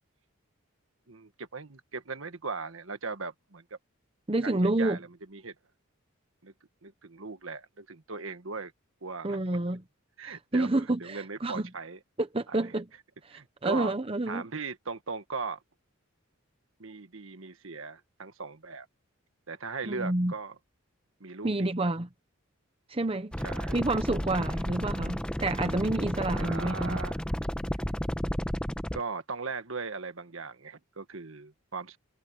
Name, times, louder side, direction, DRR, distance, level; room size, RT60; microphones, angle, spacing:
voice 1, 1.1-3.8 4.4-5.5 6.4-6.5 6.8-8.7 9.0-9.6 10.2-12.0 12.5-12.8 13.3-13.9 14.3-15.6 16.8-18.9 19.5-20.5 21.2-21.9 23.4-23.8 24.4-24.7 26.2-27.2 28.9-32.0, right 4 dB, 70° right, 1.5 m, -39 dB
voice 2, 4.3-5.0 9.2-9.8 10.5-11.6 12.2-12.9 13.3-14.4 19.9-20.3 21.4-22.1 22.9-23.3 23.7-27.0, right 2 dB, 25° right, 0.8 m, -29 dB
sound 1, 23.3-29.0, equal, 5° left, 0.9 m, -32 dB
head